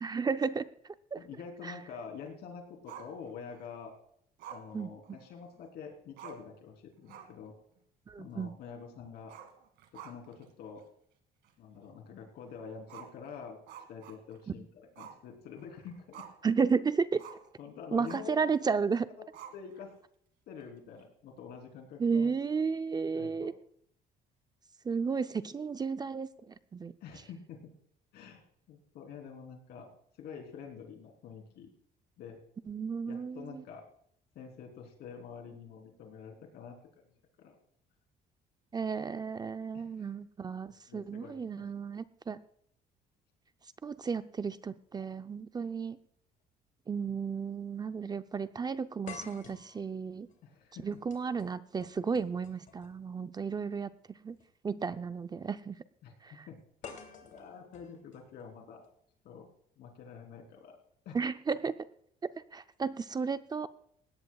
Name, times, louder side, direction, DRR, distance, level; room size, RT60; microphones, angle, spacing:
voice 1, 0.0-1.2 1.6-1.7 4.7-4.9 8.1-8.5 16.4-17.2 17.9-19.1 22.0-23.5 24.8-26.9 32.7-33.6 38.7-42.4 43.8-46.0 46.9-50.3 50.8-54.4 54.6-55.8 56.2-56.5 61.1-61.8 62.2-63.7, right 5 dB, 25° right, 11 dB, 0.5 m, -33 dB
voice 2, 1.2-3.9 4.5-7.5 8.2-9.3 9.9-10.8 11.6-13.6 13.9-14.7 15.0-16.3 17.6-18.4 19.5-19.9 20.5-22.3 23.1-23.5 27.0-27.6 28.1-28.4 28.7-29.9 30.2-31.7 32.2-32.4 33.1-33.8 34.4-36.8 37.4-37.6 39.7-40.1 40.8-41.6 50.4-50.9 56.0-56.1 56.5-56.6 56.8-58.9 59.2-59.5 59.8-60.8 61.1-61.2, left 6 dB, 75° left, 2 dB, 3.5 m, -47 dB
Growling, 2.9-3.7 4.4-5.6 5.9-6.0 6.2-6.6 7.0-7.5 7.8-7.9 9.2-10.5 10.8-10.9 11.4-11.5 12.8-14.5 15.0-15.2 15.6-16.5 17.2-17.5 18.0-18.4 19.3-20.0, right 8 dB, 80° right, 2.0 m, -50 dB
sound 1, 45.8-45.9 47.1-47.2 47.6-47.7 49.1-53.1 54.3-54.4 56.8-58.8, left 6 dB, 50° left, 2.9 m, -51 dB
19.0 x 17.0 x 2.3 m, 0.68 s
cardioid pair, 110°, 17 cm